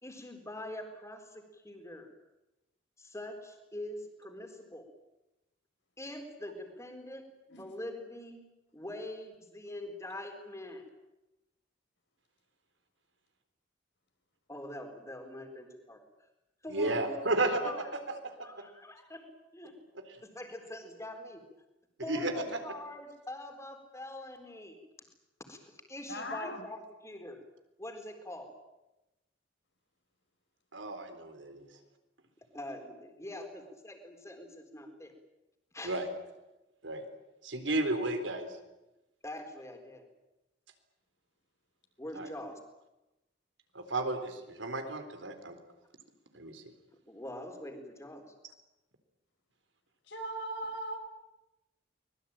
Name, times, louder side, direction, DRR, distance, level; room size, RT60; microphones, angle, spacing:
voice 1, 0.0-2.1 3.0-4.9 6.0-8.4 8.7-10.9 14.5-16.0 16.6-17.9 18.4-19.3 19.5-19.7 20.2-21.4 22.0-24.8 25.5-27.4 27.8-28.5 32.5-35.1 35.7-36.0 39.2-40.0 42.0-42.6 47.1-48.2, left 1 dB, 15° left, 5 dB, 4.1 m, -44 dB
voice 2, 16.7-17.7 18.4-18.5 20.0-20.1 22.1-22.6 30.7-31.7 35.8-36.1 36.8-37.0 37.4-38.5 42.1-42.3 43.7-45.6 46.3-46.6, right 2 dB, 80° right, 7 dB, 4.0 m, -33 dB
voice 3, 22.2-22.5 26.1-26.6 50.1-51.0, right 1 dB, 65° left, 5 dB, 5.1 m, -39 dB
24.5 x 21.0 x 9.0 m, 0.97 s
head